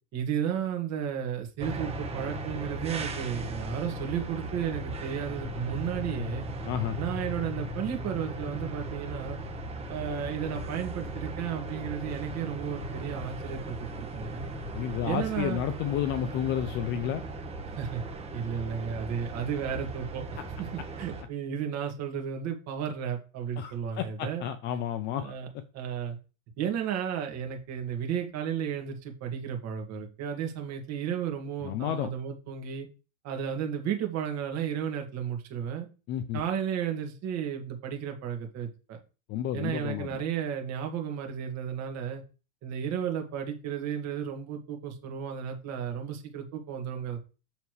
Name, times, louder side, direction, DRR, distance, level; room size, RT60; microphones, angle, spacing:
voice 1, 0.1-6.5 7.0-9.4 9.9-14.5 15.0-15.6 17.8-18.0 18.3-24.4 25.2-25.5 25.7-26.2 26.6-32.9 33.2-35.9 36.3-39.0 39.5-42.2 42.6-47.2, right 8 dB, 40° right, 4 dB, 2.1 m, -33 dB
sound 1, 1.6-21.2, right 2 dB, 15° right, 1.2 m, -37 dB
voice 2, 6.6-7.0 14.7-17.2 23.6-25.3 31.6-32.1 36.1-36.4 39.3-40.2, left 10 dB, 30° left, 11 dB, 0.4 m, -31 dB
7.2 x 6.8 x 3.2 m, 0.33 s
supercardioid pair, 150°, 42 cm